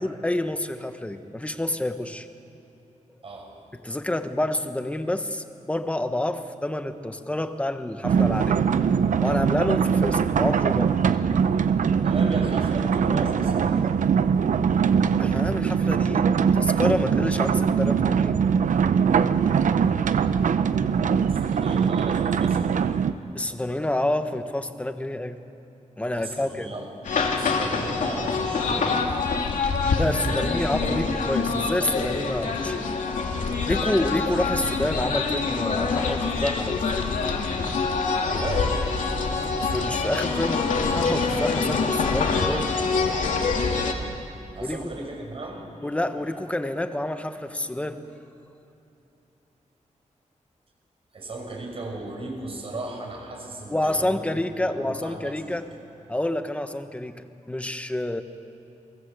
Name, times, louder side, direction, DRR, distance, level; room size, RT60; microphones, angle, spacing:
voice 1, 0.0-2.3 3.7-8.6 9.2-11.0 15.2-18.5 23.3-25.4 26.0-26.7 29.9-32.9 33.7-37.1 39.6-42.7 44.6-44.9 45.8-48.0 53.7-55.7 56.1-58.2, left 1 dB, 10° left, 8 dB, 1.2 m, -28 dB
sound 1, 8.0-23.1, right 6 dB, 80° right, 0.8 m, -22 dB
voice 2, 12.0-13.8 21.3-23.1 26.1-26.9 27.2-29.1 30.3-30.4 30.7-31.5 38.4-38.9 44.5-45.6 51.1-54.4 54.7-55.8, right 2 dB, 45° right, 1 dB, 6.0 m, -36 dB
sound 2, 27.0-43.9, left 4 dB, 85° left, 2.6 m, -25 dB
29.5 x 22.5 x 8.1 m, 2.9 s
wide cardioid pair, 160°, 13 cm